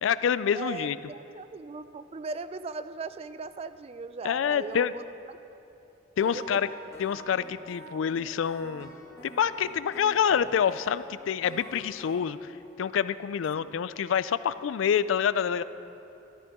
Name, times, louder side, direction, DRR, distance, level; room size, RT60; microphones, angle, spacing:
voice 1, 0.0-1.0 4.2-4.9 6.2-6.7 7.0-8.9 9.2-12.5 12.8-15.6, left 8 dB, 85° left, 16 dB, 0.3 m, -27 dB
voice 2, 0.5-5.6 6.3-6.6 13.5-13.7, right 4 dB, 30° right, 13 dB, 0.3 m, -39 dB
sound 1, 6.2-12.2, right 1 dB, 15° left, 1.4 m, -46 dB
13.5 x 13.0 x 3.6 m, 3.0 s
head